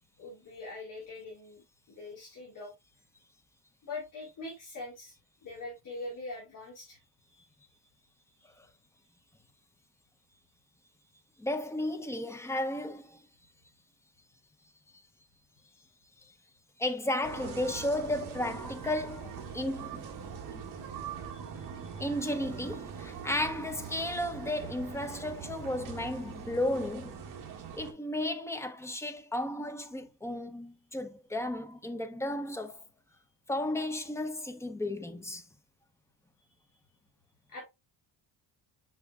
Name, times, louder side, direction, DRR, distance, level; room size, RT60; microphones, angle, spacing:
voice 1, 0.2-2.7 3.8-5.1 5.4-7.0 7.4-7.5 21.3-21.4 37.5-37.6, left 2 dB, 45° left, 3.6 m, -43 dB
voice 2, 11.4-13.2 16.2-16.3 16.8-20.1 20.5-20.6 22.0-27.2 27.7-32.8 33.5-35.4, left 1 dB, 5° left, 0.6 m, -34 dB
sound 1, 17.2-27.9, right 7 dB, 45° right, 1.7 m, -42 dB
7.1 x 5.8 x 2.3 m
cardioid pair, 150°, 44 cm